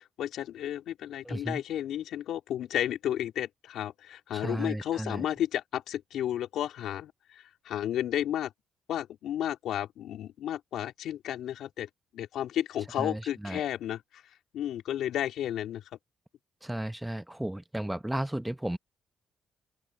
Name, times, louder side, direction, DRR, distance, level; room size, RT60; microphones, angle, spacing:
voice 1, 0.0-8.5 8.9-14.0 14.5-15.8, left 11 dB, 80° left, 3.0 m, -33 dB
voice 2, 1.2-1.6 4.3-5.3 13.0-13.6 16.6-18.8, right 1 dB, 5° right, 0.9 m, -34 dB
cardioid pair, 90°, 0 cm